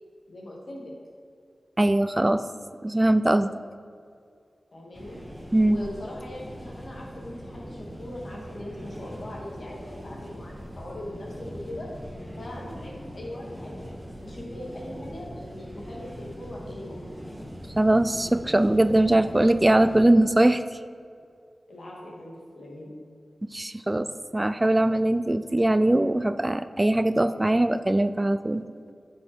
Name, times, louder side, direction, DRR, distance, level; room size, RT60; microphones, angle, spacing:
voice 1, 0.3-0.9 4.7-5.2 5.6-11.9 12.4-13.9 14.2-17.0 21.7-22.9, left 1 dB, 65° left, -3 dB, 2.5 m, -40 dB
voice 2, 1.8-2.4 2.8-3.5 5.5-5.8 17.8-20.6 23.5-24.1 24.3-28.6, right 1 dB, 25° right, 11 dB, 0.4 m, -21 dB
sound 1, 4.9-20.0, equal, 10° right, 1.5 m, -41 dB
9.6 x 6.4 x 4.5 m, 2.2 s
cardioid pair, 40°, 0 cm